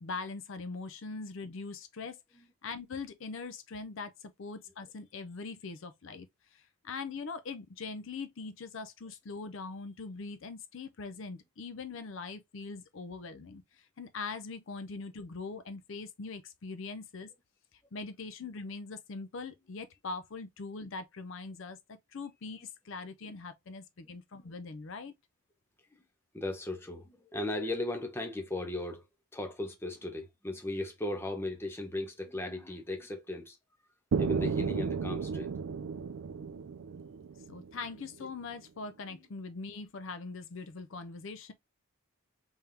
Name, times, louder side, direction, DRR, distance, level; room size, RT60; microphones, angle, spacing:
voice 1, 0.0-2.2 2.6-6.3 6.5-17.3 17.9-25.1 37.5-41.5, left 4 dB, 60° left, 0.5 m, -42 dB
voice 2, 26.3-29.0 29.3-33.6 34.2-35.5 36.6-36.7 39.1-39.2, left 2 dB, 10° left, 0.7 m, -37 dB
sound 1, 34.1-38.0, right 5 dB, 70° right, 0.4 m, -33 dB
3.6 x 3.4 x 2.6 m
head